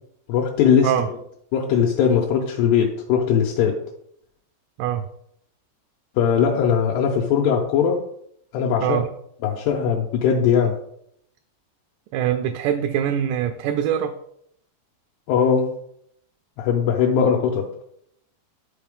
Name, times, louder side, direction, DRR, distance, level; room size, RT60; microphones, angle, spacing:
voice 1, 0.3-0.9 1.5-3.8 6.2-8.0 8.5-9.0 9.4-10.8 15.3-15.7 16.6-17.7, left 7 dB, 80° left, -1 dB, 2.6 m, -20 dB
voice 2, 12.1-14.1, right 10 dB, 85° right, 6 dB, 2.5 m, -23 dB
11.5 x 4.2 x 3.6 m, 0.71 s
omnidirectional pair, 5.1 m